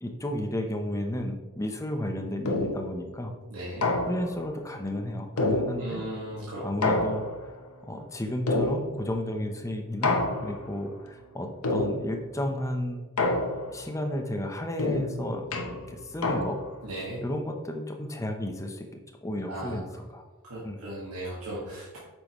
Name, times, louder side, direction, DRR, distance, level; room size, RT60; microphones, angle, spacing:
voice 1, 0.0-3.3 4.1-6.0 6.6-7.3 7.8-13.0 13.7-15.5 15.9-16.6 17.2-18.9 19.2-20.2 20.6-20.8, left 1 dB, 15° left, 4 dB, 0.7 m, -32 dB
sound 1, 2.5-3.0 3.8-4.5 5.4-6.1 6.8-7.6 8.5-9.2 10.0-10.8 11.6-12.3 13.2-13.9 14.8-16.8, left 2 dB, 85° left, 1.0 m, -28 dB
voice 2, 3.5-3.9 5.8-6.6 16.8-17.2 19.5-19.8 20.4-22.0, right 1 dB, 85° right, -7 dB, 1.7 m, -37 dB
8.3 x 6.3 x 3.0 m, 1.2 s
head